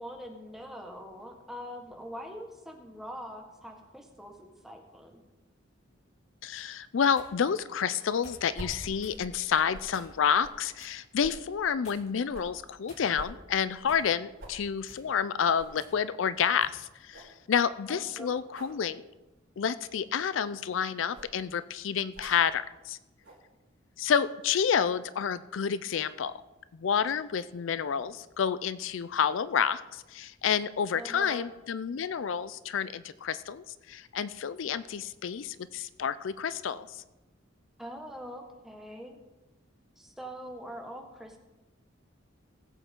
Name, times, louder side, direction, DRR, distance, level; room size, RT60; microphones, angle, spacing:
voice 1, 0.0-5.2 17.9-18.4 30.9-31.5 37.8-39.2 40.0-41.4, equal, ahead, 2 dB, 1.4 m, -43 dB
voice 2, 6.4-19.0 19.6-23.0 24.0-26.3 26.7-37.0, left 7 dB, 75° left, 15 dB, 0.4 m, -29 dB
sound 1, 7.2-7.3 8.2-8.5 9.0-9.2 9.9-10.3 10.8-11.0 11.8-12.2 12.9-13.4 13.9-14.1 14.8-15.1 15.8-15.9 16.6-16.8, left 1 dB, 35° left, 2.8 m, -53 dB
sound 2, 8.5-10.0 10.4-10.6 11.2-12.6 13.2-14.1 14.4-14.6 15.0-15.1 15.6-15.8 16.3-16.4 16.7-16.8 17.1-17.4 18.5-18.8 19.7-20.0 21.1-21.4 22.1-22.4 23.2-23.4, right 1 dB, 85° right, 3.3 m, -46 dB
18.5 x 8.2 x 3.7 m, 1.0 s
head